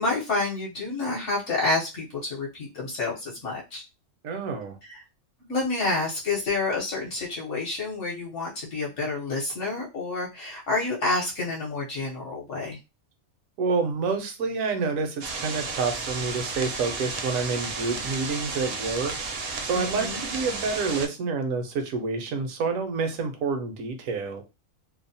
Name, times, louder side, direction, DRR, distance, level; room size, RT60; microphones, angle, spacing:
voice 1, 0.0-3.8 4.9-5.0 5.4-12.8 19.7-20.2, left 3 dB, 60° left, -4 dB, 1.0 m, -29 dB
voice 2, 4.2-4.8 13.6-19.1 19.6-24.4, right 4 dB, 75° right, 6 dB, 1.0 m, -28 dB
sound 1, 15.2-21.1, right 4 dB, 60° right, 0.7 m, -33 dB
2.7 x 2.0 x 2.6 m, 0.26 s
omnidirectional pair, 1.5 m